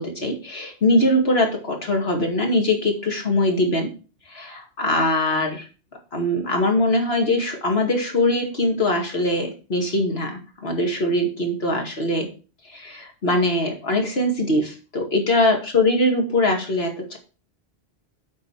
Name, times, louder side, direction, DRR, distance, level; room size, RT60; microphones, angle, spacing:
voice 1, 0.0-3.9 4.3-5.6 6.1-12.3 12.7-17.2, left 1 dB, 70° left, 2 dB, 2.6 m, -22 dB
8.1 x 5.1 x 7.3 m, 0.34 s
omnidirectional pair, 1.1 m